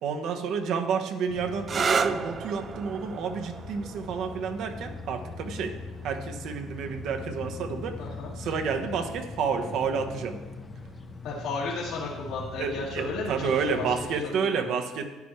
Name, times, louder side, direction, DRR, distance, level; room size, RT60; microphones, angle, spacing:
voice 1, 0.0-5.7 6.0-8.0 8.4-10.4 12.6-15.0, right 6 dB, 60° right, 5 dB, 1.2 m, -30 dB
sound 1, 1.3-14.2, left 3 dB, 20° left, 0.8 m, -41 dB
sound 2, 1.6-9.0 10.0-10.6 14.1-14.4, right 5 dB, 35° right, 0.5 m, -35 dB
voice 2, 8.0-8.3 11.2-13.8 14.4-14.7, left 3 dB, 70° left, -6 dB, 2.2 m, -34 dB
12.0 x 10.0 x 3.3 m, 1.2 s
cardioid pair, 120°, 0 cm